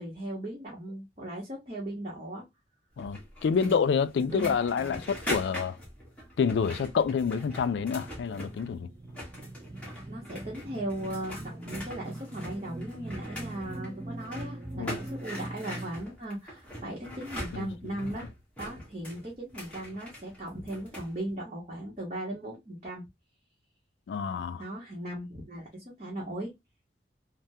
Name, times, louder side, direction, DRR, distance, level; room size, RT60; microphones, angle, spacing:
voice 1, 0.0-2.4 3.5-3.8 4.3-5.0 10.1-18.3 18.6-23.0 24.6-26.5, right 1 dB, 35° right, 0.9 m, -38 dB
voice 2, 3.0-5.8 6.4-8.9 14.8-15.0 17.5-17.7 24.1-24.6, left 6 dB, 80° left, 0.3 m, -28 dB
sound 1, 3.0-8.8 9.0-21.1, equal, 5° left, 1.1 m, -42 dB
sound 2, 6.1-15.9, right 2 dB, 20° right, 0.4 m, -43 dB
3.4 x 2.1 x 2.6 m
head